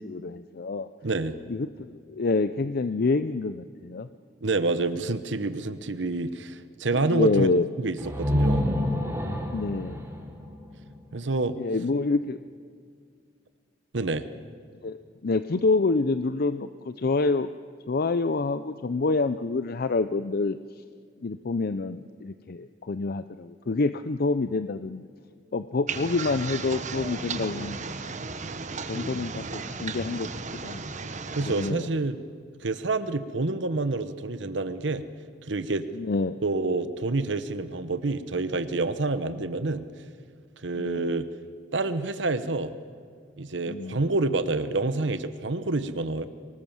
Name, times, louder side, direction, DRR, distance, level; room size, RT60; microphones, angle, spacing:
voice 1, 0.0-0.9 1.5-4.1 6.9-7.7 9.5-10.0 11.6-12.4 14.8-17.5 17.9-20.6 21.2-25.0 25.5-27.8 28.9-30.8 31.4-31.9 35.9-36.4 40.8-41.1 43.7-44.0, left 3 dB, 55° left, 12 dB, 0.5 m, -27 dB
voice 2, 1.0-1.3 4.4-7.5 7.8-8.6 11.1-11.6 13.9-14.3 31.3-32.2 32.6-35.0 35.5-35.8 36.4-39.9 40.6-41.3 41.7-42.7 43.4-46.3, right 3 dB, 70° right, 12 dB, 1.0 m, -28 dB
sound 1, 8.0-11.7, left 1 dB, 15° right, 2.8 m, -28 dB
sound 2, 25.9-31.7, right 4 dB, 40° right, 1.2 m, -35 dB
24.0 x 19.5 x 7.3 m, 2.1 s
head